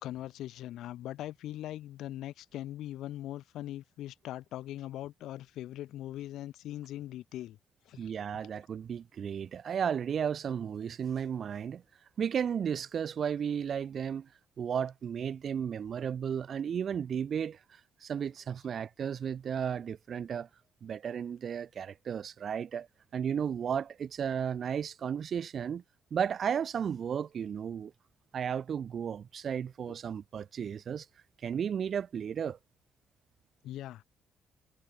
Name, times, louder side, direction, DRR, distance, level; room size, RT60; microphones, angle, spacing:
voice 1, 0.0-7.6 7.9-8.1 8.4-8.5 33.6-34.0, left 13 dB, 85° left, 4.3 m, -41 dB
voice 2, 8.0-11.8 12.2-14.3 14.6-20.5 20.8-22.9 23.1-25.8 26.1-27.9 28.3-31.1 31.4-32.6, right 8 dB, 55° right, 1.1 m, -34 dB
cardioid pair, 90°, 0 cm